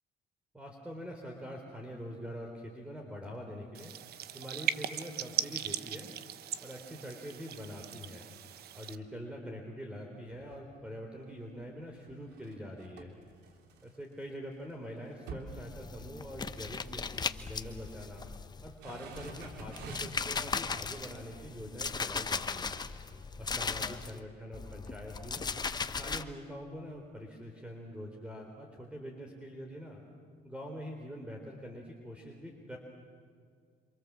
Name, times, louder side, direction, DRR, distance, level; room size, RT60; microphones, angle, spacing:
voice 1, 0.5-3.9 4.3-6.1 6.6-8.2 8.7-13.2 13.8-18.3 18.6-22.8 23.4-25.5 26.0-30.0 30.4-32.8, equal, 5° right, 1 dB, 3.9 m, -44 dB
sound 1, 3.7-9.0, right 11 dB, 70° right, 1.2 m, -38 dB
sound 2, 10.2-10.7 11.2-14.2 14.6-14.7 15.0-16.4 16.6-16.8 17.6-18.3 18.7-20.3 20.8-20.9, right 3 dB, 85° right, 3.2 m, -49 dB
sound 3, 15.5-18.8 19.1-24.2 24.5-26.2, left 5 dB, 25° left, 1.1 m, -38 dB
28.0 x 27.0 x 7.6 m, 2.1 s
cardioid pair, 110°, 17 cm